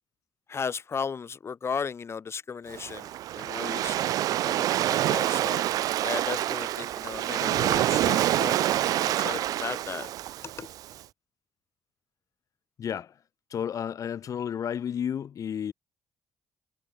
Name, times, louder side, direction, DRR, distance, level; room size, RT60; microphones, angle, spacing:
voice 1, 0.5-5.6 6.0-10.1 10.6-10.7, left 6 dB, 45° left, 0.8 m, -36 dB
Waves surf, 2.7-10.9, right 13 dB, 70° right, 0.9 m, -27 dB
voice 2, 12.8-13.1 13.5-15.7, left 8 dB, 60° left, 3.3 m, -32 dB
hypercardioid pair, 50°, 6 cm